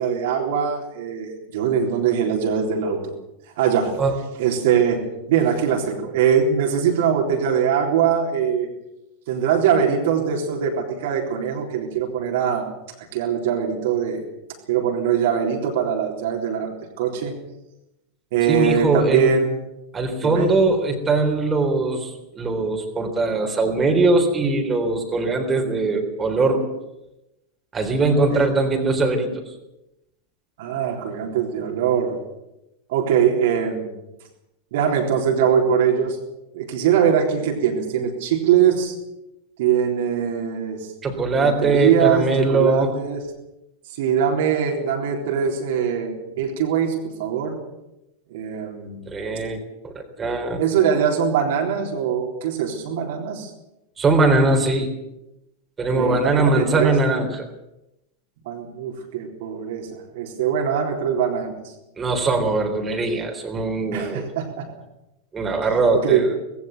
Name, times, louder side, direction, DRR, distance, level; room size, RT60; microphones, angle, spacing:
voice 1, 0.0-3.1 3.6-3.9 4.4-8.7 9.3-12.7 13.1-14.2 14.7-17.3 18.3-19.6 20.2-20.5 28.2-28.4 30.6-32.2 32.9-33.9 34.7-36.2 36.5-39.0 39.6-40.9 41.4-43.2 43.9-47.6 48.3-49.0 50.6-53.5 55.9-56.9 58.4-61.7 63.9-64.7 65.9-66.2, right 8 dB, 55° right, 1 dB, 3.8 m, -22 dB
voice 2, 18.5-19.4 19.9-26.6 27.7-29.5 41.0-42.9 49.1-49.6 49.8-50.6 54.0-54.9 55.8-57.5 62.0-64.3 65.3-66.4, right 3 dB, 20° right, 3 dB, 3.9 m, -21 dB
19.5 x 16.5 x 8.2 m, 0.91 s
figure-of-eight pair, 90°, 0 cm